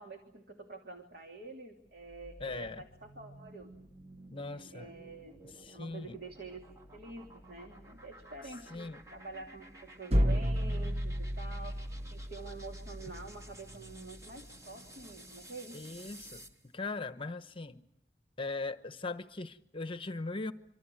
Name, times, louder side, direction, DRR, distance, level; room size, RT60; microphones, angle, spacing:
voice 1, 0.0-3.7 4.5-6.6 6.9-11.8 12.1-16.1, right 3 dB, 55° right, 3.0 m, -48 dB
sound 1, 1.9-16.6, right 1 dB, 20° right, 2.8 m, -54 dB
voice 2, 2.4-2.8 4.3-4.9 5.6-6.2 8.7-9.0 15.7-16.4 16.7-17.8 18.4-20.5, left 3 dB, 30° left, 1.1 m, -39 dB
sound 2, 10.1-14.0, equal, 35° right, 1.0 m, -32 dB
26.5 x 25.5 x 7.8 m
head